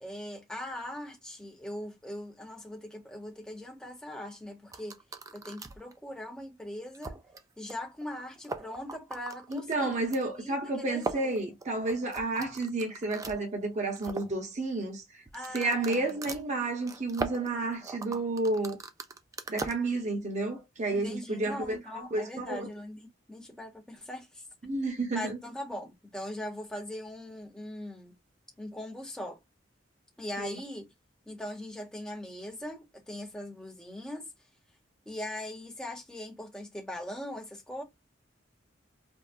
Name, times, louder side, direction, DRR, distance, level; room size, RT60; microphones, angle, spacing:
voice 1, 0.0-5.0 5.3-7.2 7.6-9.9 10.4-11.3 15.3-16.2 20.9-24.4 25.1-28.1 28.6-29.4 30.2-30.9 31.3-34.3 35.1-37.8, left 1 dB, 5° left, 0.7 m, -40 dB
sound 1, 4.7-5.9 6.4-6.5 6.9-7.4 7.7-8.1 8.4-10.2 11.0-13.4 13.8-14.3 15.3-19.7, right 3 dB, 20° right, 0.3 m, -39 dB
voice 2, 9.5-15.0 15.5-18.8 19.5-21.8 22.1-22.7 24.6-25.4 30.4-30.5, right 2 dB, 40° right, 0.8 m, -31 dB
3.5 x 2.0 x 2.5 m
head